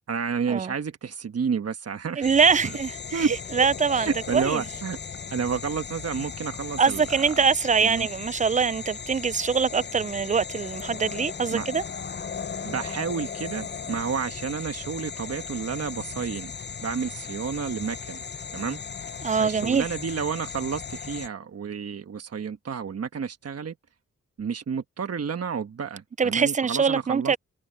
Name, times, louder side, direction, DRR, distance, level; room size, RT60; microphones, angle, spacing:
voice 1, 0.1-2.3 2.6-2.8 3.1-3.7 3.9-5.0 5.3-7.0 7.8-8.1 11.5-11.7 12.6-16.5 16.8-18.2 18.5-18.8 19.4-23.7 24.4-27.3, right 6 dB, 55° right, 1.3 m, -30 dB
sound 1, 2.2-21.3, left 6 dB, 35° left, 0.7 m, -37 dB
voice 2, 2.2-4.6 6.8-11.8 19.2-19.8 26.2-27.4, right 5 dB, 25° right, 0.4 m, -23 dB
cardioid pair, 60°, 30 cm